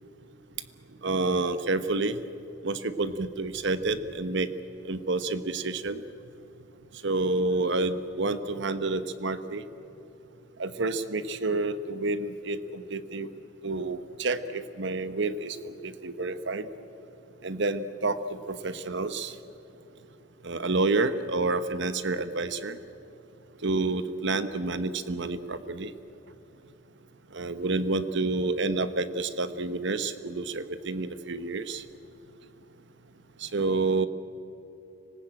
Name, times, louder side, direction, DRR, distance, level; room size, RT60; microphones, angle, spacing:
voice 1, 1.0-2.2 2.6-4.5 4.9-6.0 7.0-9.6 10.6-13.3 13.6-16.7 17.4-19.3 20.4-22.8 23.6-25.9 27.3-31.8 33.4-34.1, right 3 dB, 60° right, 12 dB, 1.1 m, -29 dB
25.5 x 19.0 x 8.9 m, 2.9 s
head